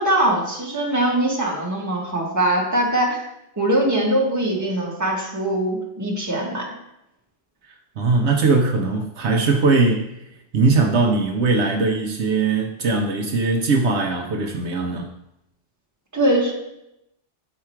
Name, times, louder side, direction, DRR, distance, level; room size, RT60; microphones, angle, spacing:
voice 1, 0.0-3.2 3.6-6.7 16.1-16.5, right 1 dB, 15° right, -3 dB, 1.3 m, -22 dB
voice 2, 7.7-10.1 10.5-15.1, right 3 dB, 70° right, 2 dB, 1.0 m, -20 dB
7.2 x 4.8 x 4.4 m, 0.86 s
omnidirectional pair, 1.2 m